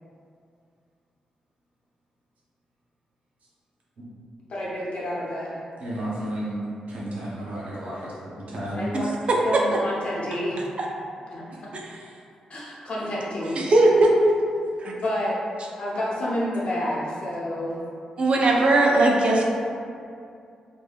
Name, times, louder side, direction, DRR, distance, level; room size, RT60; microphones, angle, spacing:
voice 1, 4.5-5.6 8.7-9.1 9.4-10.6 11.3-11.4 12.5-13.6 14.9-15.4 15.8-17.8, left 1 dB, 50° left, -6 dB, 0.8 m, -29 dB
voice 2, 5.8-6.6 6.9-8.8, right 1 dB, 70° right, -6 dB, 0.7 m, -33 dB
voice 3, 13.6-14.1 14.8-14.9 18.2-19.4, right 2 dB, 50° right, -1 dB, 0.4 m, -18 dB
3.2 x 2.2 x 2.3 m, 2.4 s
cardioid pair, 60°, 2 cm